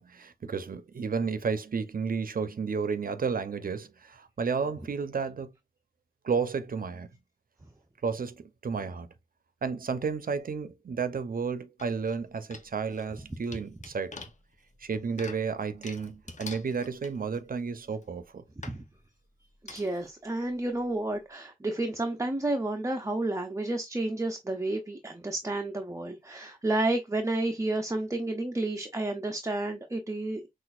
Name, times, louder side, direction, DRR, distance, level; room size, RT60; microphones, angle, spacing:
voice 1, 0.0-5.5 6.2-7.1 8.0-9.1 9.6-14.2 14.8-18.4, right 5 dB, 70° right, 0.6 m, -32 dB
sound 1, 11.8-12.2 12.5-17.5 18.0-18.1 18.6-18.8 19.7-20.1 20.5-20.6 20.8-20.9, left 4 dB, 55° left, 0.7 m, -46 dB
voice 2, 19.6-30.5, right 2 dB, 20° right, 0.6 m, -31 dB
5.9 x 2.5 x 2.4 m
wide cardioid pair, 90°, 15 cm